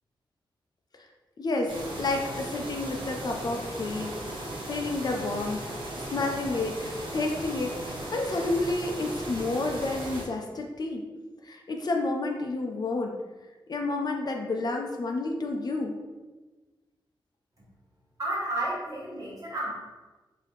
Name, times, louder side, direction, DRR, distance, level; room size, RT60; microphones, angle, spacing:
voice 1, 1.4-5.6 6.0-7.7 8.1-11.0 11.4-13.2 13.7-15.9, left 2 dB, 50° left, 2 dB, 0.4 m, -30 dB
sound 1, 1.7-10.2, right 1 dB, 65° right, 1.0 m, -37 dB
voice 2, 18.2-19.8, right 1 dB, 45° right, -7 dB, 1.4 m, -31 dB
3.4 x 2.7 x 3.9 m, 1.2 s
wide cardioid pair, 125°, 9 cm